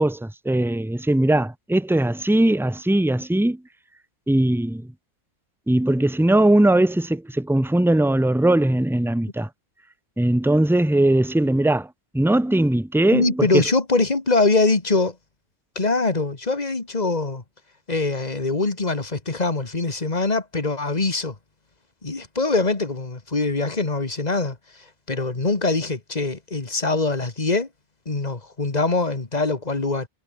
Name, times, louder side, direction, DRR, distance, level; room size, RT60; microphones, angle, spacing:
voice 1, 0.0-3.6 4.3-4.9 5.7-9.5 10.2-11.9 12.1-13.6, right 1 dB, ahead, 0.7 m, -20 dB
voice 2, 13.1-15.2 15.8-17.4 17.9-21.3 22.0-24.6 25.1-27.7 28.1-30.1, left 3 dB, 25° left, 2.1 m, -23 dB
omnidirectional pair, 1.6 m